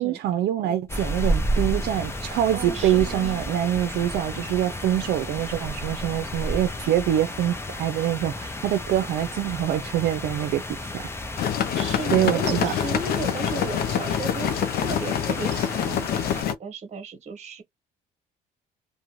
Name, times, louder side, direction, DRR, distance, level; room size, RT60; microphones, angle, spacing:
voice 1, 0.0-10.6 10.9-11.0 12.1-12.7, right 12 dB, 75° right, 0.5 m, -25 dB
sound 1, 0.9-16.4, equal, 15° left, 0.6 m, -32 dB
voice 2, 2.5-3.4 11.6-17.6, right 4 dB, 40° right, 1.2 m, -35 dB
sound 2, 11.4-16.5, left 9 dB, 65° left, 0.6 m, -26 dB
2.4 x 2.2 x 3.0 m
cardioid pair, 110°, 17 cm